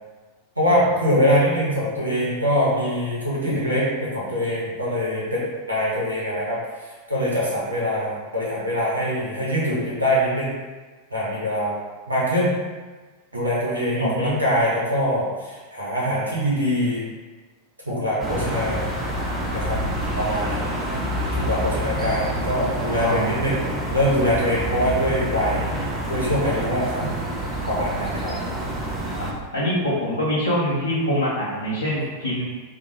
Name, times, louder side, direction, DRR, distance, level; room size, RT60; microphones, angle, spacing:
voice 1, 0.6-6.6 7.1-10.5 11.1-11.8 12.1-12.5 13.3-17.0 17.9-18.9 19.5-19.8 20.2-20.7 21.3-23.5 23.9-25.6 26.1-27.0 27.7-28.3, equal, 85° right, -7 dB, 0.8 m, -23 dB
voice 2, 13.9-14.4 23.0-23.4 29.1-29.3 29.5-32.4, equal, 75° left, -8 dB, 0.5 m, -24 dB
sound 1, 18.2-29.3, equal, 15° right, 0.5 m, -27 dB
2.2 x 2.1 x 2.9 m, 1.3 s
figure-of-eight pair, 90°, 0 cm